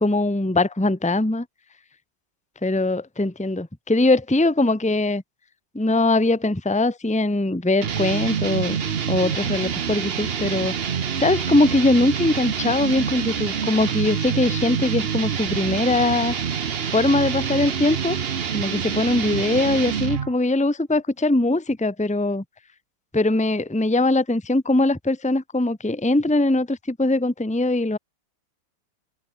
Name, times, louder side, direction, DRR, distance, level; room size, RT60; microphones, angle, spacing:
voice 1, 0.0-1.5 2.6-5.2 5.7-8.8 9.1-10.8 11.2-16.4 16.9-18.2 18.5-22.4 23.1-28.0, left 2 dB, 5° left, 1.6 m, -21 dB
sound 1, 7.8-20.3, right 7 dB, 45° right, 0.8 m, -26 dB
omnidirectional pair, 2.2 m